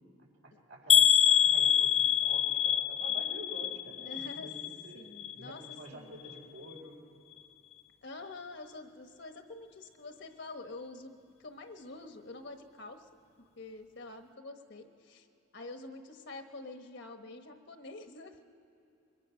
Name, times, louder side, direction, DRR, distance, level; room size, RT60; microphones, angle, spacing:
voice 1, 0.4-5.0 5.3-7.0, right 1 dB, 80° right, -1 dB, 4.4 m, -49 dB
sound 1, 0.9-4.9 5.2-5.8 6.2-6.4 6.7-6.8, left 9 dB, 30° left, 0.4 m, -26 dB
voice 2, 4.0-4.5 4.9-5.6 5.9-6.2 8.0-13.1 13.4-15.3 15.5-18.4, left 2 dB, 60° left, 6 dB, 1.3 m, -47 dB
23.0 x 21.0 x 5.8 m, 2.8 s
head